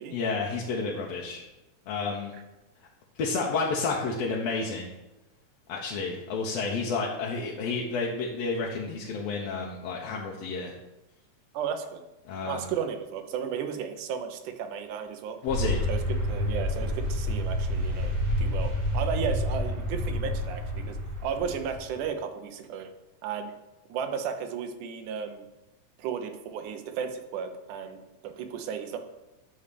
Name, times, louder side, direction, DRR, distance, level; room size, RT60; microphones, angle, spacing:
voice 1, 0.1-1.4 1.9-2.3 3.2-4.9 5.7-10.7 12.3-12.7 15.4-15.8, left 4 dB, 65° left, -2 dB, 1.9 m, -30 dB
voice 2, 11.5-12.0 12.4-15.4 15.9-16.0 16.3-22.9 23.2-23.5 23.9-25.5 26.0-29.0, right 7 dB, 85° right, 6 dB, 2.4 m, -34 dB
sound 1, 15.5-21.9, left 1 dB, 50° right, 4.4 m, -29 dB
10.0 x 4.2 x 6.9 m, 1.0 s
omnidirectional pair, 3.5 m